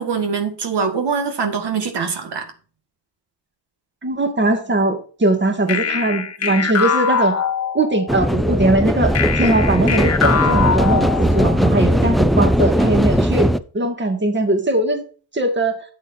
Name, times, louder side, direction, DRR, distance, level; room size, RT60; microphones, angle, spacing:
voice 1, 0.0-2.5, right 5 dB, 75° right, 1.9 m, -23 dB
voice 2, 4.0-7.4 7.7-15.0 15.3-15.8, right 2 dB, 25° right, 2.1 m, -20 dB
sound 1, 5.7-8.2 9.1-11.7, left 6 dB, 35° left, 1.0 m, -22 dB
sound 2, 8.1-13.6, equal, ahead, 0.5 m, -18 dB
13.0 x 8.3 x 2.7 m
wide cardioid pair, 115°, 41 cm